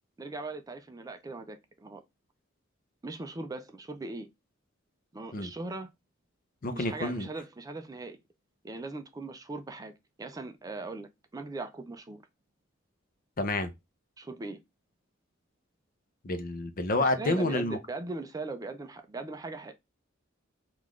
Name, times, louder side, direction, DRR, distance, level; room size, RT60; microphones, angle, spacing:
voice 1, 0.2-2.0 3.0-4.3 5.1-5.9 6.7-8.2 8.6-9.9 10.2-12.2 14.2-14.6 17.0-19.7, right 3 dB, 20° right, 0.4 m, -39 dB
voice 2, 6.6-7.3 13.4-13.7 16.2-17.8, left 2 dB, 45° left, 0.6 m, -29 dB
3.8 x 2.4 x 3.0 m
head